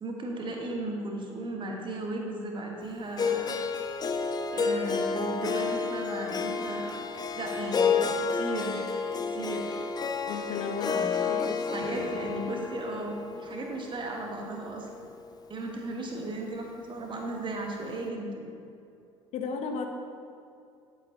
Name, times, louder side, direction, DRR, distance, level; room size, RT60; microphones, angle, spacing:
voice 1, 0.0-3.6 4.5-7.0 7.3-8.9 9.2-9.9 11.7-15.1 15.5-18.5, right 2 dB, 30° right, 1 dB, 1.5 m, -36 dB
Harp, 3.2-15.3, left 5 dB, 25° left, 0.7 m, -31 dB
voice 2, 10.3-12.1 19.3-19.9, left 5 dB, 45° left, 4 dB, 1.0 m, -35 dB
11.0 x 8.6 x 2.9 m, 2.5 s
figure-of-eight pair, 60°, 16 cm